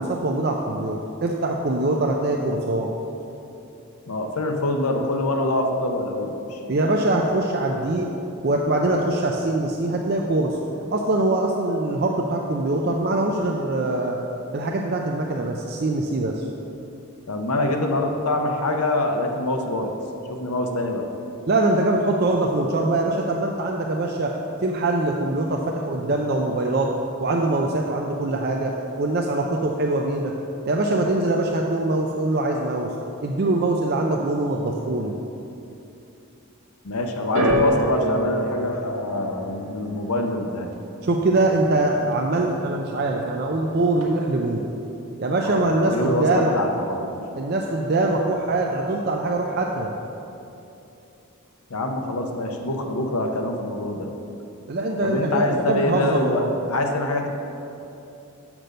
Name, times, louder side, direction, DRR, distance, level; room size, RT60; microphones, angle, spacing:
voice 1, 0.0-2.9 6.7-8.1 8.4-10.6 10.9-14.2 14.5-16.4 21.5-24.3 24.6-26.9 27.2-30.3 30.7-32.9 33.2-35.1 41.0-44.6 45.2-46.5 47.3-49.9 54.7-56.5, right 2 dB, 45° right, 0 dB, 0.5 m, -23 dB
voice 2, 4.1-6.6 17.3-19.9 20.3-21.0 36.8-40.7 45.4-47.1 51.7-54.1 55.0-57.3, left 1 dB, 85° left, 4 dB, 0.8 m, -25 dB
sound 1, 37.3-43.6 43.9-44.6 45.3-45.4, right 1 dB, 85° right, 1.2 m, -29 dB
6.6 x 6.0 x 6.5 m, 2.9 s
head